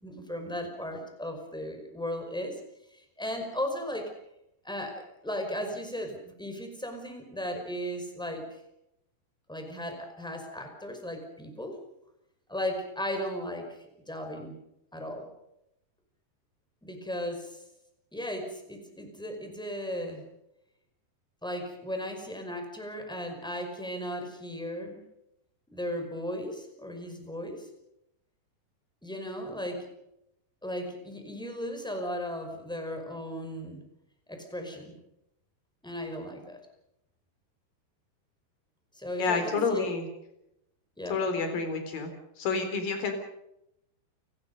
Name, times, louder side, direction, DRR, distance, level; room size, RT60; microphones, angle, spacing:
voice 1, 0.0-2.6 2.9-4.1 4.6-8.6 9.5-11.8 12.5-14.5 14.9-15.3 16.8-17.6 18.1-20.2 21.4-25.0 25.7-27.7 29.0-29.9 30.6-33.8 34.3-34.9 35.8-36.6 38.9-39.8 41.0-41.3, equal, ahead, 4 dB, 4.8 m, -36 dB
voice 2, 39.2-40.1 41.1-42.1 42.4-43.1, left 4 dB, 55° left, 7 dB, 5.4 m, -29 dB
29.5 x 20.0 x 5.4 m, 0.83 s
omnidirectional pair, 4.9 m